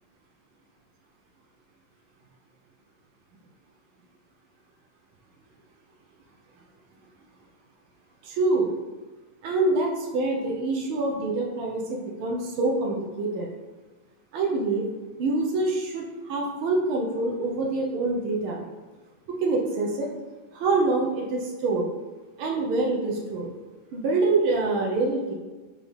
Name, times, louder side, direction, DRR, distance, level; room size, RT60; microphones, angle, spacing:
voice 1, 8.2-8.7 9.4-13.5 14.3-14.8 15.2-18.6 19.3-20.1 20.5-21.8 22.4-23.5 23.9-25.3, right 3 dB, 80° right, -1 dB, 1.1 m, -25 dB
5.7 x 3.8 x 5.1 m, 1.3 s
omnidirectional pair, 3.5 m